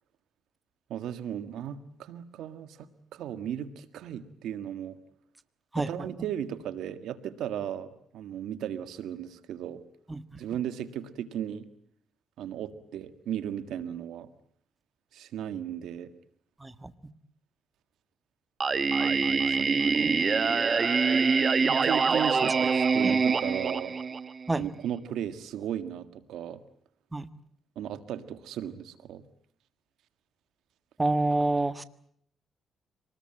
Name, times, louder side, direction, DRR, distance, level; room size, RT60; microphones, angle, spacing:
voice 1, 0.9-5.0 5.8-9.8 10.4-11.7 12.4-14.3 15.1-16.1 19.1-19.7 19.9-20.6 21.6-23.9 24.6-26.6 27.7-29.2, right 10 dB, 85° right, 11 dB, 1.7 m, -36 dB
voice 2, 16.6-16.9 23.0-23.2 24.5-24.6 27.1-27.3 31.0-31.8, right 2 dB, 15° right, 11 dB, 1.5 m, -28 dB
Singing, 18.6-24.5, right 5 dB, 40° right, 1.0 m, -25 dB
26.0 x 20.0 x 8.9 m, 0.65 s
cardioid pair, 85°, 0 cm